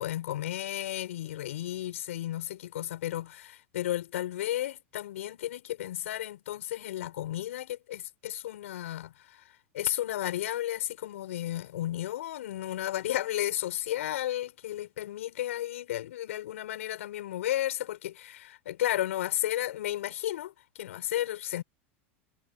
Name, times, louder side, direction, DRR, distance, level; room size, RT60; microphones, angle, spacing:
voice 1, 0.0-21.6, left 13 dB, 80° left, 5.5 m, -33 dB
hypercardioid pair, 100°, 7 cm